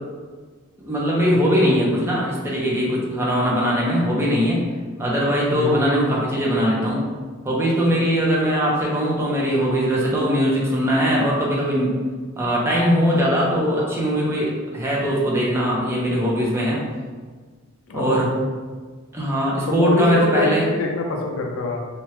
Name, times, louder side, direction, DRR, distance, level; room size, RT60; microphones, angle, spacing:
voice 1, 0.8-4.6 5.0-7.0 7.4-12.0 12.3-16.8 17.9-18.3 19.1-20.7, equal, 10° right, -5 dB, 0.5 m, -20 dB
voice 2, 17.9-18.2 19.7-21.8, left 2 dB, 75° left, 1 dB, 0.4 m, -24 dB
2.9 x 2.2 x 3.1 m, 1.5 s
head